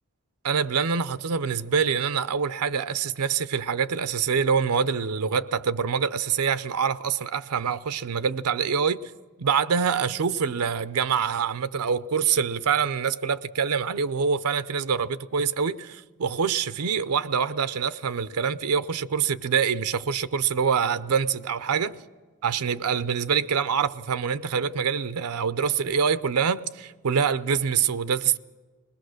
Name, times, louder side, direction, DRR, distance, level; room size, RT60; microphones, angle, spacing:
voice 1, 0.4-9.0 9.4-21.9 22.4-28.4, right 6 dB, 85° right, 0.6 m, -25 dB
20.5 x 20.0 x 6.4 m
head